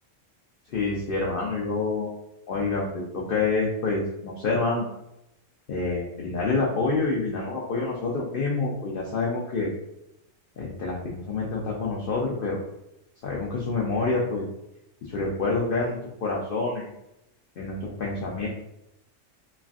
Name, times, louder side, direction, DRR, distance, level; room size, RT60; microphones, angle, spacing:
voice 1, 0.7-2.1 2.5-4.9 5.7-9.7 10.6-12.6 13.2-14.5 15.0-16.9 17.6-18.5, left 3 dB, 65° left, -3 dB, 0.5 m, -27 dB
3.1 x 2.5 x 2.3 m, 0.86 s
omnidirectional pair, 1.3 m